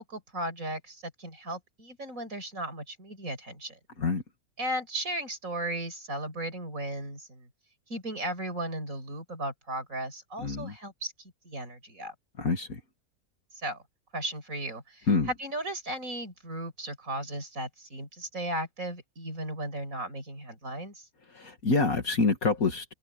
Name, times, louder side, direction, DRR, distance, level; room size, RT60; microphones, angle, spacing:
voice 1, 0.0-3.8 4.6-7.5 7.9-12.1 13.5-13.8 14.1-21.1, right 1 dB, 60° right, 6.2 m, -36 dB
voice 2, 10.4-10.7 12.4-12.8 15.1-15.3 21.3-22.9, left 4 dB, 65° left, 2.8 m, -26 dB
omnidirectional pair, 1.6 m